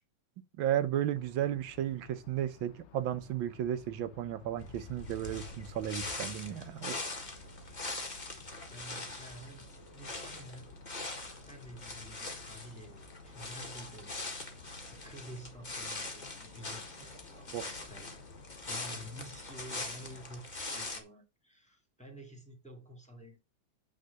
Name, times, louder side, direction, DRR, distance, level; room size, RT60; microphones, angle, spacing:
voice 1, 0.6-7.1 17.5-17.7, right 11 dB, 80° right, 1.5 m, -34 dB
sound 1, 1.1-20.3, left 8 dB, 75° left, 0.6 m, -56 dB
sound 2, 4.6-21.0, left 2 dB, 25° left, 1.4 m, -42 dB
voice 2, 8.7-10.8 11.2-14.6 14.9-18.2 18.7-23.4, equal, 5° left, 2.2 m, -50 dB
9.0 x 3.7 x 6.4 m
omnidirectional pair, 2.1 m